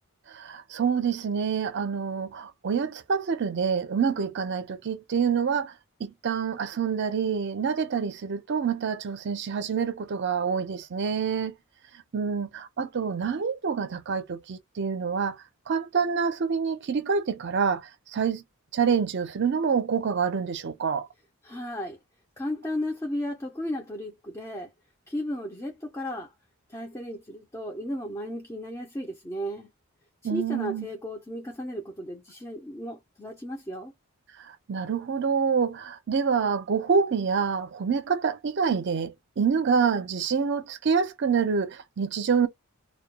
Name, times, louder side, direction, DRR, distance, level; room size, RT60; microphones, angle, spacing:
voice 1, 0.3-5.7 6.0-11.5 12.1-15.4 15.7-18.4 18.7-21.1 30.2-30.8 34.4-42.5, right 6 dB, 50° right, 0.5 m, -27 dB
voice 2, 21.4-22.0 22.4-24.7 25.1-26.3 26.7-29.7 30.3-33.9, left 1 dB, 15° left, 0.4 m, -34 dB
2.2 x 2.2 x 2.8 m
head